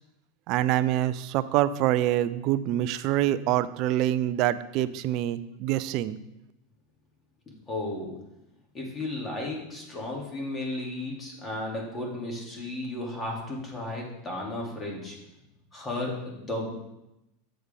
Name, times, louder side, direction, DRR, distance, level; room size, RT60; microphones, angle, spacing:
voice 1, 0.5-6.2, right 13 dB, 50° right, 16 dB, 0.5 m, -25 dB
voice 2, 7.5-8.1 8.7-15.2 15.7-16.8, left 2 dB, 20° left, -2 dB, 3.0 m, -34 dB
7.9 x 7.7 x 3.7 m, 0.89 s
figure-of-eight pair, 85°, 0 cm